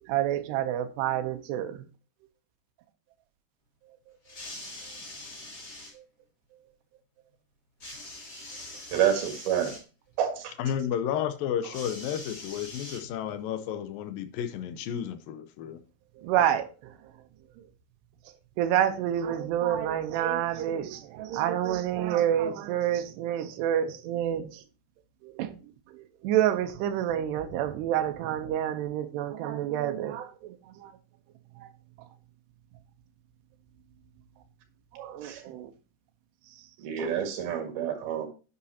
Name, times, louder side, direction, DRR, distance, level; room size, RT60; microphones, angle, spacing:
voice 1, 0.0-1.9 6.0-6.1 16.2-16.9 18.6-24.6 25.2-25.6 25.9-30.9 31.6-31.7 34.9-35.7 37.0-37.1, right 11 dB, 85° right, 2.9 m, -28 dB
sound 1, 4.2-5.9 7.8-9.8 11.7-13.4 14.4-14.5, left 2 dB, 25° left, 3.1 m, -43 dB
voice 2, 8.9-9.7 10.2-10.5 35.2-35.4 36.8-38.3, right 9 dB, 70° right, 3.6 m, -28 dB
voice 3, 10.6-15.8, left 9 dB, 75° left, 2.2 m, -32 dB
9.7 x 8.5 x 2.8 m
omnidirectional pair, 4.7 m